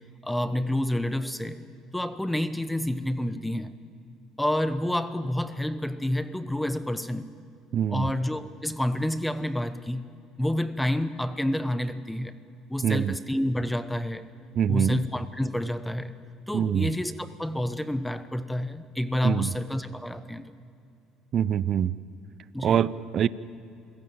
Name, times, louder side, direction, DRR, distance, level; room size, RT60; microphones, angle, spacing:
voice 1, 0.2-1.6 1.9-3.7 4.4-7.3 7.9-10.0 10.4-12.3 12.7-14.3 14.7-16.1 16.5-20.4 22.5-22.8, left 1 dB, 5° left, 13 dB, 0.9 m, -29 dB
voice 2, 7.7-8.1 12.8-13.2 14.5-15.0 16.5-16.9 19.2-19.5 21.3-21.9 22.6-23.3, right 9 dB, 50° right, 19 dB, 0.7 m, -24 dB
28.0 x 17.0 x 8.8 m, 2.6 s
cardioid pair, 105°, 0 cm